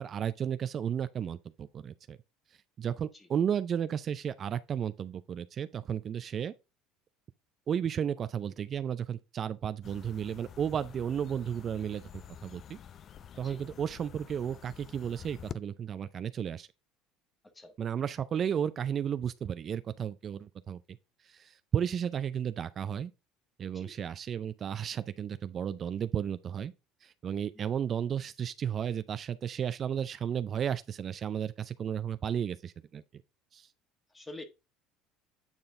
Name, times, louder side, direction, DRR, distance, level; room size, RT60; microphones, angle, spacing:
voice 1, 0.0-2.2 2.8-6.5 7.7-12.0 12.4-12.8 13.4-16.7 17.8-21.0 21.2-23.1 23.6-26.7 27.0-33.0 33.5-33.7, right 8 dB, 40° right, 0.4 m, -33 dB
sound 1, 9.8-15.5, left 8 dB, 40° left, 0.5 m, -48 dB
voice 2, 34.1-34.4, left 2 dB, 15° left, 1.3 m, -47 dB
8.8 x 4.0 x 3.7 m
supercardioid pair, 115°, 0 cm